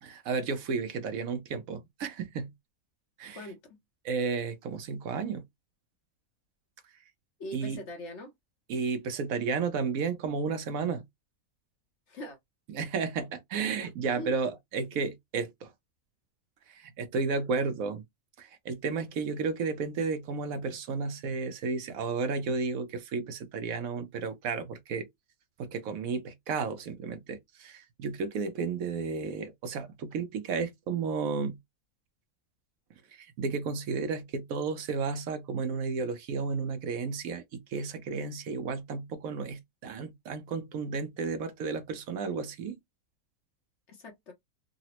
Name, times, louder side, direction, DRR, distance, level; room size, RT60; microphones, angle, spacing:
voice 1, 0.0-2.5 3.2-3.4 4.0-5.4 7.5-7.8 8.7-11.0 12.7-15.7 16.7-18.0 18.4-25.1 25.6-31.6 33.1-42.8, right 5 dB, 70° right, 1.0 m, -33 dB
voice 2, 3.3-3.8 7.4-8.3 12.1-12.4 14.1-14.4 43.9-44.3, equal, 55° left, 0.9 m, -41 dB
3.8 x 2.0 x 2.8 m
omnidirectional pair, 1.6 m